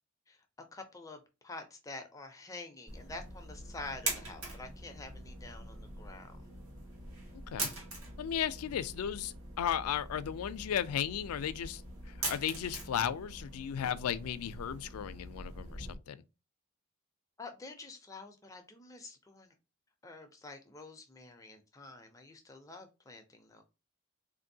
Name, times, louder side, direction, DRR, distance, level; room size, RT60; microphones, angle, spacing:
voice 1, 0.7-6.4 17.4-19.5 20.0-23.6, left 3 dB, 15° left, 0.4 m, -48 dB
sound 1, 2.9-15.9, right 2 dB, 75° right, 1.1 m, -43 dB
voice 2, 8.2-11.8 12.3-16.2, left 9 dB, 90° left, 0.4 m, -35 dB
3.6 x 2.6 x 2.6 m
head